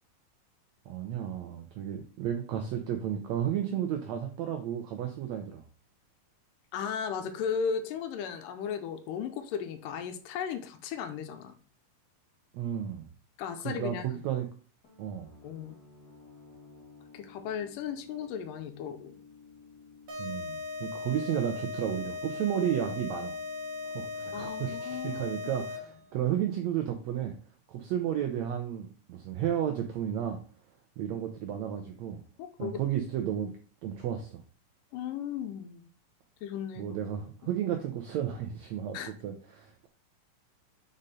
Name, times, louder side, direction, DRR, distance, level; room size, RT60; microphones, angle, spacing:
voice 1, 0.9-5.6 12.5-13.1 13.6-14.5 15.0-15.3 20.2-23.3 23.9-27.3 27.7-30.4 31.0-32.2 32.6-33.5 33.8-34.4 36.8-39.9, right 10 dB, 80° right, 5 dB, 1.6 m, -33 dB
voice 2, 6.7-11.6 13.4-14.1 15.4-15.8 17.1-19.2 24.3-25.2 32.4-32.8 34.9-35.9 36.4-36.9 38.9-39.1, left 7 dB, 80° left, 8 dB, 2.2 m, -35 dB
sound 1, 14.8-26.3, left 5 dB, 35° left, 2.0 m, -55 dB
sound 2, 20.1-26.0, left 4 dB, 55° right, 0.9 m, -38 dB
5.3 x 5.1 x 4.1 m, 0.40 s
omnidirectional pair, 4.0 m